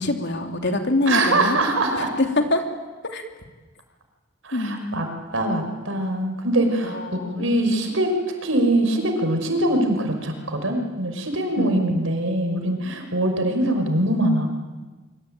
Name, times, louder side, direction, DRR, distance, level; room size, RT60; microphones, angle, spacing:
voice 1, 0.0-1.6 2.4-2.6 3.1-3.2 4.5-5.0 6.9-7.6 11.6-11.9, left 2 dB, 60° left, 4 dB, 3.1 m, -25 dB
voice 2, 1.1-2.1 4.4-5.1 5.3-7.0 7.4-8.1 8.4-14.5, right 1 dB, 80° right, 4 dB, 5.7 m, -23 dB
25.5 x 24.5 x 9.2 m, 1.3 s
head